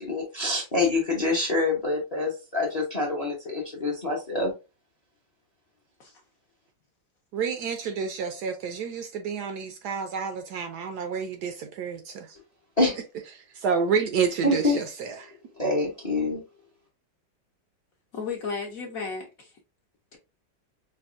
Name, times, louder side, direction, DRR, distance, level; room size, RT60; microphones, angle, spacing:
voice 1, 0.0-4.5 12.8-13.0 14.4-14.8 15.5-16.4, left 2 dB, 35° left, 0.6 m, -26 dB
voice 2, 7.3-12.3 13.6-15.1, right 6 dB, 70° right, 1.0 m, -29 dB
voice 3, 18.1-19.5 20.1-20.2, left 5 dB, 65° left, 0.9 m, -34 dB
5.1 x 2.3 x 2.4 m
omnidirectional pair, 2.0 m